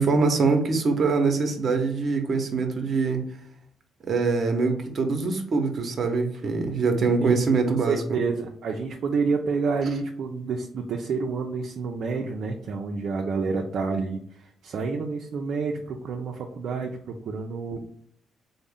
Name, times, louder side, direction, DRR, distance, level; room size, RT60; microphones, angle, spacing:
voice 1, 0.0-3.2 4.0-8.2, right 4 dB, 50° right, 4 dB, 0.8 m, -23 dB
voice 2, 7.9-17.8, right 4 dB, 65° right, 2 dB, 0.5 m, -29 dB
3.7 x 2.1 x 3.6 m, 0.63 s
cardioid pair, 90°, 0 cm